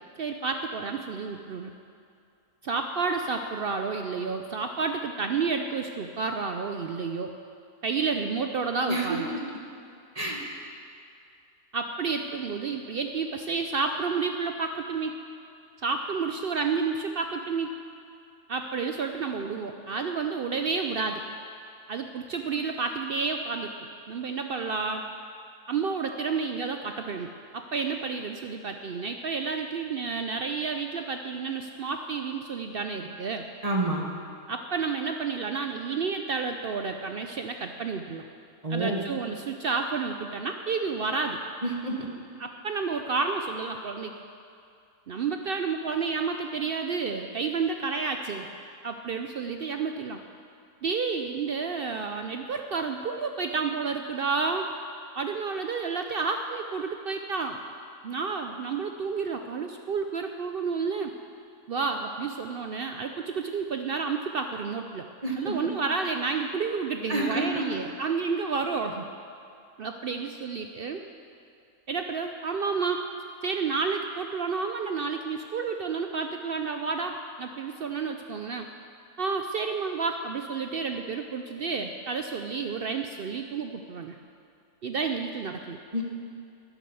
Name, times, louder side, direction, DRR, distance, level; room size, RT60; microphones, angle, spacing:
voice 1, 0.2-1.7 2.6-7.3 7.8-9.3 11.7-15.2 15.8-17.7 18.5-21.2 21.9-23.7 24.1-25.0 25.7-33.4 34.5-38.2 38.7-41.4 42.4-44.1 45.1-48.5 48.8-50.2 50.8-54.7 55.2-57.6 58.0-61.1 61.7-65.1 65.4-69.1 69.8-71.0 71.9-73.0 73.4-78.7 79.2-84.2 84.8-85.8, right 5 dB, 75° right, 5 dB, 0.5 m, -30 dB
voice 2, 8.9-9.2 10.1-10.4 33.6-34.0 38.6-39.0 41.6-42.1 65.2-65.5 67.1-67.6 85.9-86.0, right 2 dB, 25° right, -1 dB, 1.3 m, -28 dB
11.0 x 9.8 x 6.9 m, 2.5 s
omnidirectional pair, 1.6 m